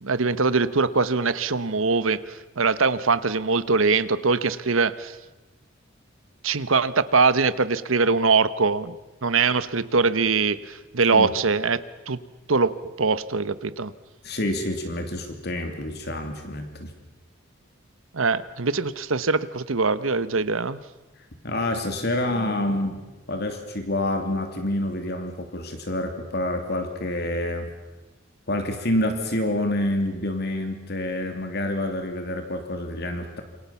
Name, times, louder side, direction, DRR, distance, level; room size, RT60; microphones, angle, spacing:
voice 1, 0.0-5.1 6.4-8.9 9.2-12.2 12.5-12.7 13.0-13.9 18.1-20.8, right 4 dB, 75° right, 14 dB, 1.1 m, -22 dB
voice 2, 14.2-16.9 21.4-23.0 23.3-27.7 28.5-33.4, left 1 dB, 50° left, 6 dB, 2.9 m, -27 dB
27.5 x 24.5 x 7.1 m, 1.1 s
head